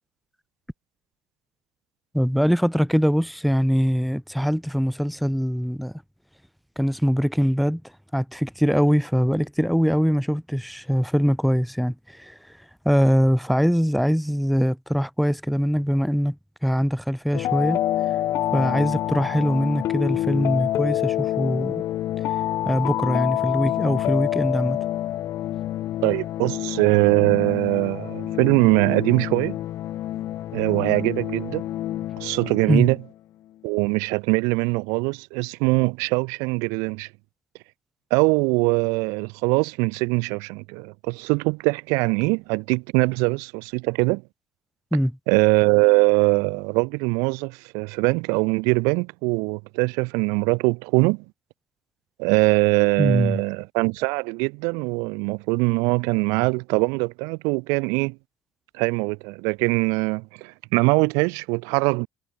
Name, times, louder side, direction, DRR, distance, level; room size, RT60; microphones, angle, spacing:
voice 1, 2.1-5.9 6.8-7.8 8.1-12.3 12.8-16.4 16.6-17.8 18.5-21.8 22.6-24.8 32.7-32.9 44.9-45.1 53.0-53.4, equal, ahead, 0.6 m, -22 dB
sound 1, 17.3-33.1, left 13 dB, 65° left, 0.5 m, -27 dB
voice 2, 26.0-29.6 30.5-31.7 32.2-33.0 33.6-37.1 38.1-44.2 45.3-51.2 52.2-58.2 58.7-62.1, right 31 dB, 85° right, 0.5 m, -22 dB
supercardioid pair, 80°, 5 cm